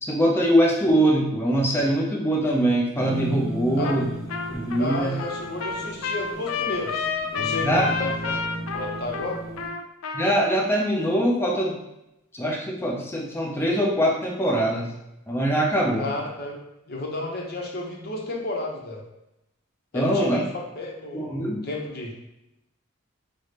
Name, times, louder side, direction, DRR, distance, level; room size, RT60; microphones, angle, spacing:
voice 1, 0.0-4.1 4.5-5.2 7.6-7.9 10.1-11.7 12.3-14.9 15.3-16.1 19.9-20.4 21.1-21.7, right 1 dB, 10° left, -2 dB, 0.6 m, -22 dB
sound 1, 2.9-9.7, right 1 dB, 70° right, 0.6 m, -35 dB
Trumpet, 3.8-4.0 4.3-10.5, left 5 dB, 85° left, 0.4 m, -30 dB
voice 2, 4.8-7.0 7.3-8.3 8.7-9.4 16.0-16.6 16.9-19.0 19.9-22.1, left 2 dB, 50° left, -1 dB, 0.8 m, -32 dB
5.4 x 2.1 x 3.3 m, 0.87 s
head